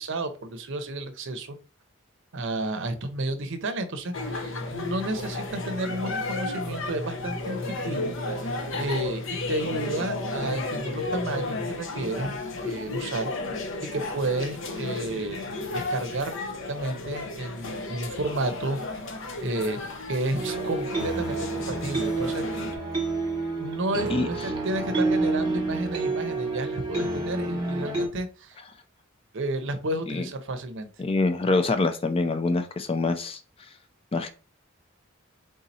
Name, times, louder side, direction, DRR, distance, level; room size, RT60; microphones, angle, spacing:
voice 1, 0.0-1.6 2.3-12.3 12.6-13.3 13.8-18.8 19.4-19.8 20.1-22.4 23.6-24.4 24.6-28.6 29.3-30.9, right 2 dB, 65° right, 0.6 m, -31 dB
sound 1, 4.1-22.8, left 2 dB, 65° left, 0.7 m, -33 dB
sound 2, 20.4-28.1, right 3 dB, 20° right, 1.1 m, -28 dB
voice 2, 24.1-24.5 30.1-30.3 31.0-33.4 34.1-34.3, left 3 dB, 25° left, 0.4 m, -25 dB
3.7 x 2.7 x 4.1 m
head